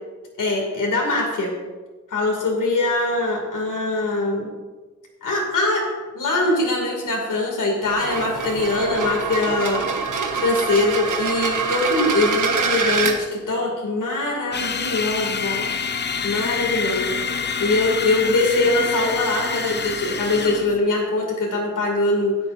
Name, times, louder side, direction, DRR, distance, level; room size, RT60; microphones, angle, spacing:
voice 1, 0.4-1.5 2.1-4.5 5.2-5.9 6.1-9.9 10.4-15.7 16.2-17.2 17.6-22.4, left 2 dB, 80° left, -1 dB, 2.5 m, -22 dB
sound 1, 7.8-13.2, right 5 dB, 75° right, 1.3 m, -25 dB
sound 2, 14.5-20.8, left 6 dB, 35° left, 0.6 m, -27 dB
16.0 x 8.2 x 2.6 m, 1.3 s
wide cardioid pair, 115°, 31 cm